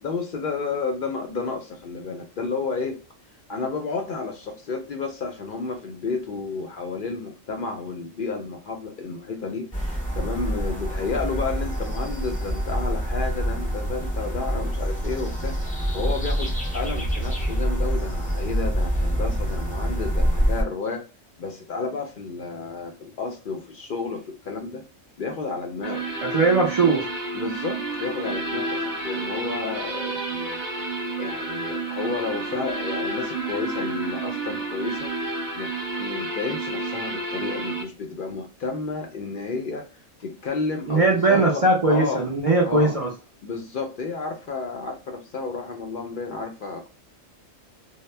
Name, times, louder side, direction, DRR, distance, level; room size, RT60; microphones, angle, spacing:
voice 1, 0.0-3.0 3.5-21.0 21.4-24.8 25.2-26.1 27.3-35.1 35.6-39.9 40.2-41.6 41.9-42.3 42.6-43.0 43.4-46.9, left 4 dB, 60° left, 0.5 m, -31 dB
sound 1, 9.7-20.6, equal, 10° left, 0.4 m, -26 dB
sound 2, 25.8-37.8, right 2 dB, 20° right, 0.8 m, -30 dB
voice 2, 26.2-27.1 40.9-43.1, right 3 dB, 60° right, 0.3 m, -20 dB
2.1 x 2.1 x 3.2 m
omnidirectional pair, 1.4 m